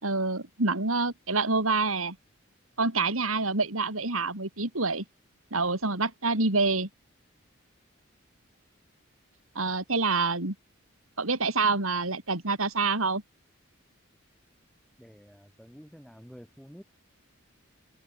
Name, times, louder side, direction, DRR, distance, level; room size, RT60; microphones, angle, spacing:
voice 1, 0.0-2.2 2.8-5.0 5.5-6.9 9.5-10.5 11.2-13.2, right 3 dB, 85° right, 4.3 m, -27 dB
voice 2, 15.0-16.8, equal, ahead, 7.8 m, -49 dB
head